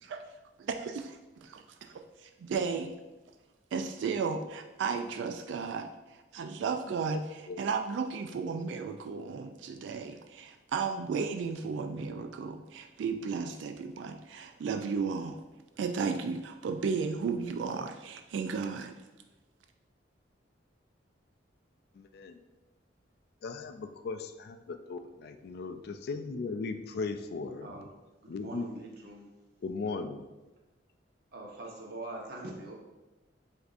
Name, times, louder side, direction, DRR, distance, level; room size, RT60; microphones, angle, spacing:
voice 1, 0.6-3.0 3.7-5.9 6.3-7.2 7.6-15.4 15.8-18.9, right 5 dB, 75° right, 6 dB, 0.3 m, -34 dB
voice 2, 21.9-22.4 23.4-27.9 28.3-28.7 29.6-30.3, left 4 dB, 60° left, 8 dB, 0.3 m, -37 dB
voice 3, 26.3-26.6 27.6-27.9 28.2-29.3 31.3-32.7, right 2 dB, 60° right, -1 dB, 0.9 m, -43 dB
7.8 x 2.7 x 2.5 m, 1.1 s
head